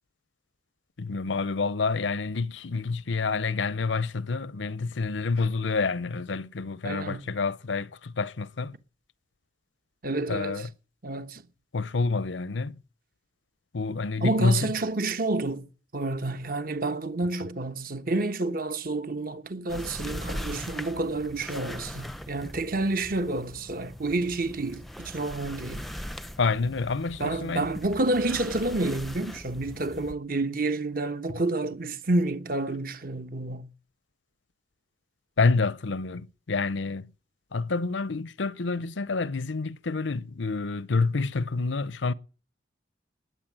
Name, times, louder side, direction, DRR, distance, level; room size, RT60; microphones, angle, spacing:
voice 1, 1.0-8.7 10.3-10.7 11.7-12.7 13.7-14.7 26.4-27.7 35.4-37.1 37.5-42.1, left 4 dB, 75° left, 0.7 m, -28 dB
voice 2, 6.8-7.2 10.0-10.7 11.0-11.4 14.2-15.7 15.9-25.8 27.2-33.7, right 2 dB, 50° right, 1.2 m, -29 dB
sound 1, 19.7-30.1, equal, ahead, 0.7 m, -40 dB
20.0 x 8.4 x 7.5 m
head